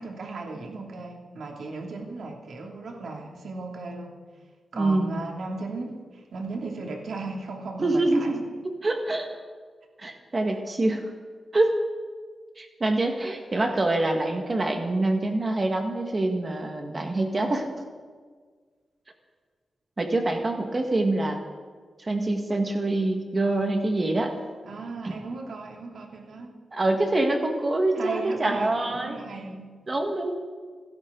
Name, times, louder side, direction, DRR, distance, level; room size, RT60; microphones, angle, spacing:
voice 1, 0.0-4.2 4.7-8.5 24.6-26.6 27.9-29.7, right 3 dB, 70° right, 1 dB, 2.8 m, -36 dB
voice 2, 4.7-5.1 7.8-8.4 8.6-9.4 10.0-11.1 11.5-11.8 12.6-17.7 20.0-21.4 22.0-24.3 26.7-29.2 29.9-30.4, right 2 dB, 25° right, 3 dB, 1.7 m, -25 dB
27.5 x 13.0 x 3.9 m, 1.5 s
wide cardioid pair, 160°, 0 cm